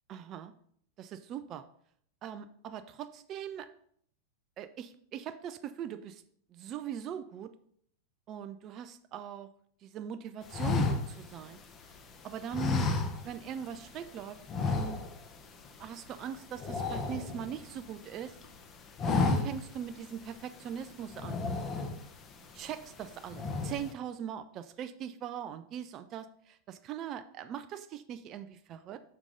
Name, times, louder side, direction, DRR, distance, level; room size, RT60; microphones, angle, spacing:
voice 1, 0.1-0.5 1.0-1.6 2.2-3.7 4.6-6.2 6.5-7.5 8.3-9.5 9.8-11.6 12.2-12.9 13.2-14.4 14.6-15.0 15.8-18.4 19.1-21.6 22.5-29.0, right 9 dB, 35° right, 10 dB, 0.4 m, -41 dB
sound 1, 10.5-12.0 12.5-13.6 13.9-14.1 14.5-15.4 15.6-15.9 16.2-17.9 18.3-18.6 18.9-19.8 20.2-20.3 21.1-22.2 22.7-23.0 23.3-23.9, left 4 dB, 25° left, 0.8 m, -31 dB
6.5 x 5.9 x 3.8 m, 0.65 s
figure-of-eight pair, 90°, 0 cm